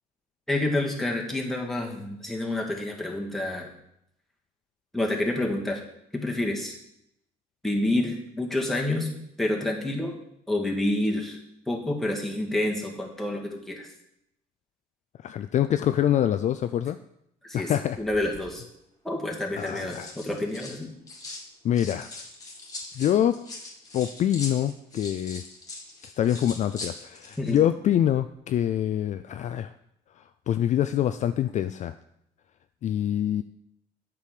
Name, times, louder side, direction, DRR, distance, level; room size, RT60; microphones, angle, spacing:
voice 1, 0.5-3.7 4.9-5.8 6.1-6.8 7.6-9.1 9.4-10.1 10.5-11.4 11.7-13.9 17.4-17.7 18.0-18.6 19.0-20.9 27.4-27.6, left 1 dB, ahead, -2 dB, 1.8 m, -28 dB
voice 2, 15.2-17.0 17.5-18.0 19.6-20.1 21.6-22.2 23.0-23.3 23.9-25.4 26.0-29.7 30.2-31.9 32.8-33.4, left 11 dB, 45° left, 10 dB, 0.4 m, -25 dB
sound 1, 18.0-18.5 19.4-21.5 21.7-27.6 27.9-28.2, left 2 dB, 20° left, 2.1 m, -41 dB
8.4 x 6.1 x 4.9 m, 0.77 s
cardioid pair, 110°, 17 cm